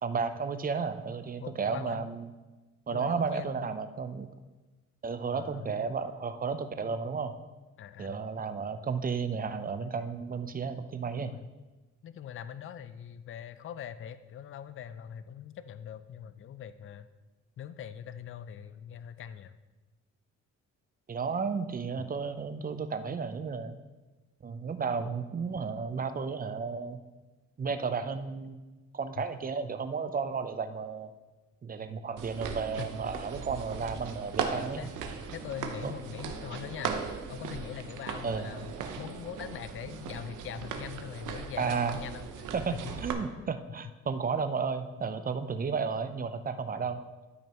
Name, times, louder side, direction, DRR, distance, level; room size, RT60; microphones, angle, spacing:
voice 1, 0.0-2.3 2.9-4.3 5.0-7.3 8.0-11.3 21.1-23.8 24.4-27.0 27.6-28.6 28.9-31.1 31.6-34.9 35.8-35.9 38.2-38.5 41.6-42.0 42.5-42.7 43.0-47.0, right 5 dB, 30° right, 10 dB, 0.6 m, -33 dB
voice 2, 1.4-2.1 2.9-3.7 5.3-5.8 7.8-8.2 11.2-11.5 12.0-17.1 17.6-19.6 29.2-29.3 32.8-32.9 34.8-35.0 35.3-36.9 37.3-42.8 43.4-43.5 46.7-46.9, left 9 dB, 45° left, 12 dB, 0.5 m, -42 dB
sound 1, 32.2-43.1, right 6 dB, 80° right, 0.9 m, -38 dB
12.5 x 5.2 x 3.0 m, 1.2 s
cardioid pair, 90°, 30 cm